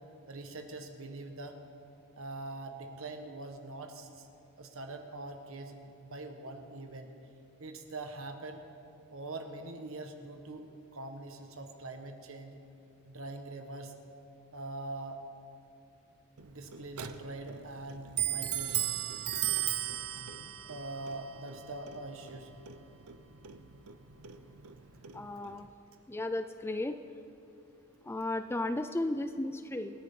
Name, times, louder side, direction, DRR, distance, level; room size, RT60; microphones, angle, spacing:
voice 1, 0.3-1.6 2.2-4.3 4.6-7.1 7.6-8.6 9.1-10.7 10.9-12.6 13.0-13.9 14.5-15.2 16.4-19.0 20.6-22.6 25.4-25.5, right 2 dB, 65° right, 5 dB, 1.3 m, -43 dB
Clock, 16.4-25.7, right 11 dB, 80° right, 0.6 m, -37 dB
voice 2, 25.1-25.7 26.1-27.0 28.0-30.0, left 2 dB, 10° left, 9 dB, 0.3 m, -34 dB
26.5 x 9.7 x 3.7 m, 2.7 s
head